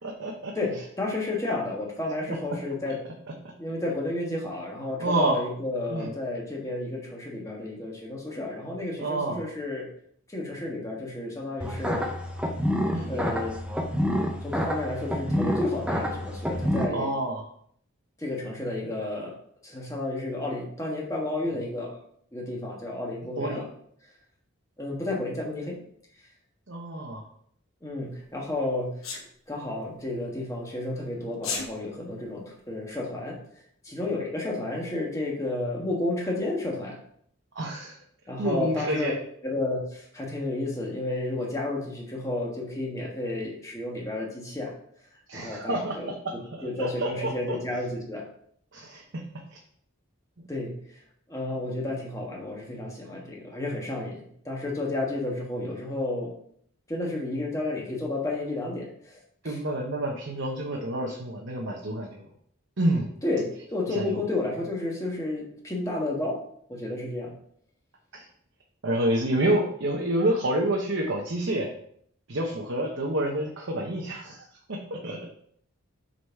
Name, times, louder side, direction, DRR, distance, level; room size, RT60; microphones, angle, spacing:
voice 1, 0.0-0.5 2.3-2.4 3.4-3.5 5.0-5.4 5.9-6.1 9.0-9.4 12.9-13.1 16.9-17.4 23.4-23.7 26.7-27.2 37.5-38.0 38.4-39.1 45.3-46.0 46.8-47.6 48.7-49.2 59.4-62.2 62.8-63.1 63.9-64.2 68.1-68.2 68.8-71.7 72.3-75.3, right 1 dB, 65° right, 0 dB, 0.9 m, -28 dB
voice 2, 0.5-3.0 3.6-9.9 10.3-12.0 13.1-13.5 14.4-17.1 18.2-19.3 19.6-21.9 22.3-23.6 24.8-25.8 27.8-29.0 29.5-33.4 33.8-37.0 38.3-39.1 39.4-44.7 45.3-46.1 46.6-48.2 50.5-51.0 51.3-56.3 56.9-59.2 59.4-59.6 63.2-66.4 66.7-67.3, left 2 dB, 15° left, -2 dB, 1.3 m, -31 dB
sound 1, 11.6-16.9, equal, 5° right, 0.6 m, -28 dB
Sneeze, 29.0-29.2 31.3-31.7, left 5 dB, 80° left, 1.1 m, -31 dB
6.3 x 4.0 x 4.6 m, 0.65 s
head